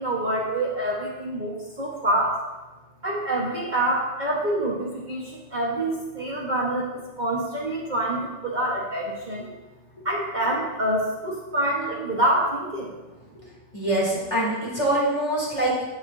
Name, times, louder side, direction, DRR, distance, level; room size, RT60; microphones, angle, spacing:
voice 1, 0.0-2.4 3.0-9.5 10.0-12.9, right 1 dB, 40° right, -5 dB, 1.4 m, -26 dB
voice 2, 13.7-15.9, right 1 dB, 25° left, -5 dB, 3.0 m, -24 dB
16.0 x 7.0 x 2.7 m, 1.1 s
omnidirectional pair, 1.3 m